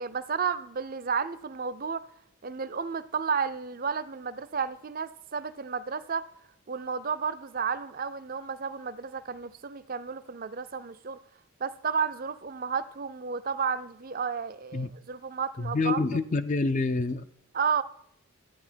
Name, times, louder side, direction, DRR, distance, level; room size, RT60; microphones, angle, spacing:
voice 1, 0.0-2.1 2.4-6.3 6.7-11.2 11.6-16.0 17.5-17.8, right 6 dB, 40° right, 0.5 m, -32 dB
voice 2, 15.6-17.3, left 3 dB, 35° left, 0.4 m, -27 dB
14.0 x 9.2 x 4.5 m
head